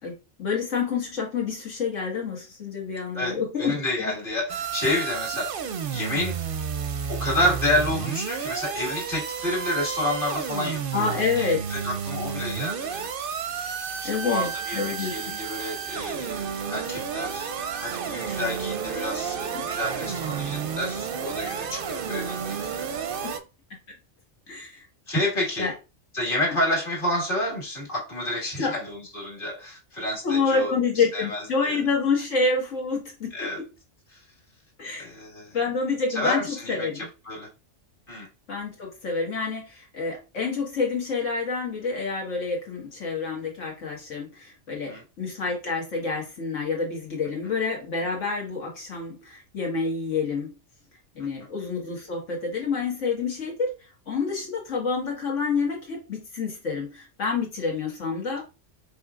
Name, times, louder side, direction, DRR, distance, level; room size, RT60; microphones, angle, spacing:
voice 1, 0.0-4.1 10.9-11.6 14.0-15.2 19.5-19.7 23.2-23.3 24.5-24.9 25.6-25.7 28.6-28.8 30.2-33.7 34.8-35.1 35.5-37.1 38.5-50.5 51.2-58.4, left 4 dB, 85° left, 1.9 m, -28 dB
voice 2, 3.2-6.4 7.1-13.1 14.0-17.5 17.8-22.4 22.8-23.3 25.1-25.7 26.1-31.8 33.3-33.6 34.1-34.2 35.0-35.6 36.1-37.5 38.1-38.3 44.9-45.0 47.4-47.5 51.2-51.3, left 1 dB, 45° left, 2.0 m, -29 dB
sound 1, 4.5-23.4, right 7 dB, 60° right, 0.6 m, -31 dB
5.3 x 3.2 x 2.4 m
omnidirectional pair, 1.2 m